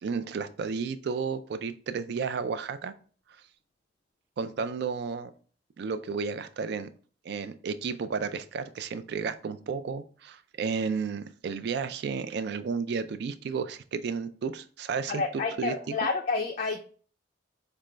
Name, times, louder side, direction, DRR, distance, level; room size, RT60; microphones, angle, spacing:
voice 1, 0.0-2.9 4.4-5.3 5.8-6.9 7.2-15.9, right 5 dB, 60° right, 11 dB, 0.3 m, -32 dB
voice 2, 15.1-16.8, left 4 dB, 40° left, 2 dB, 0.3 m, -29 dB
5.0 x 2.2 x 3.2 m, 0.42 s
head